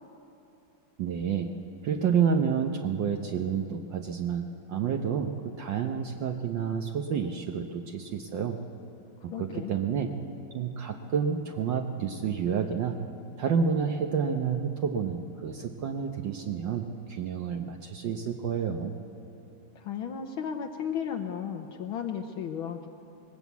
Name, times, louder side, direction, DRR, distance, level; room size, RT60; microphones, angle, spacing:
voice 1, 1.0-1.5 1.8-8.6 9.2-10.1 10.5-13.0 13.4-18.9, right 7 dB, 65° right, 3 dB, 1.5 m, -29 dB
voice 2, 9.3-9.7 19.8-22.9, left 8 dB, 75° left, 2 dB, 1.7 m, -34 dB
20.0 x 18.5 x 8.3 m, 2.9 s
omnidirectional pair, 2.3 m